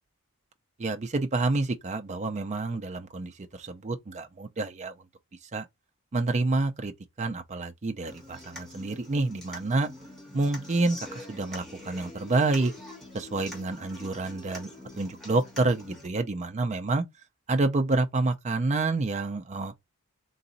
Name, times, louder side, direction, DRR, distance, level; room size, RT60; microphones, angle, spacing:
voice 1, 0.8-4.9 5.5-5.7 6.1-9.9 10.3-12.7 13.1-14.7 15.0-17.0 17.5-19.7, right 3 dB, 30° right, 0.5 m, -28 dB
Human voice / Acoustic guitar, 8.1-16.1, left 1 dB, ahead, 1.6 m, -45 dB
3.9 x 2.6 x 3.9 m
head